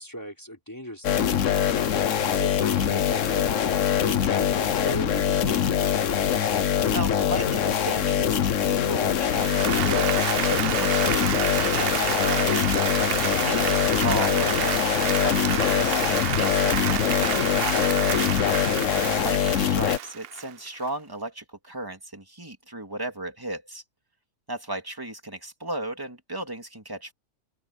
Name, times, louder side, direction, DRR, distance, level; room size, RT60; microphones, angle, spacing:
voice 1, 0.0-1.7 2.1-6.1, equal, 15° left, 4.8 m, -39 dB
sound 1, 1.0-20.0, left 9 dB, 65° left, 1.3 m, -23 dB
voice 2, 6.9-12.5 13.4-17.6 19.0-23.8 24.5-27.1, right 1 dB, 15° right, 2.7 m, -35 dB
Applause, 9.2-20.9, right 11 dB, 60° right, 0.6 m, -29 dB
open air
omnidirectional pair, 1.5 m